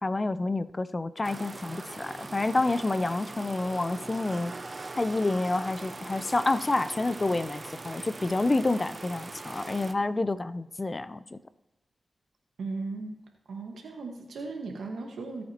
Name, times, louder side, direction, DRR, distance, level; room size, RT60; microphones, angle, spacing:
voice 1, 0.0-4.5 5.0-11.4, left 2 dB, 40° left, 14 dB, 0.6 m, -28 dB
sound 1, 1.2-9.9, right 3 dB, 45° right, 0.7 m, -41 dB
voice 2, 12.6-13.2 13.5-15.4, right 3 dB, 90° right, 3 dB, 1.6 m, -36 dB
21.5 x 8.6 x 3.0 m, 1.0 s
cardioid pair, 45°, 0 cm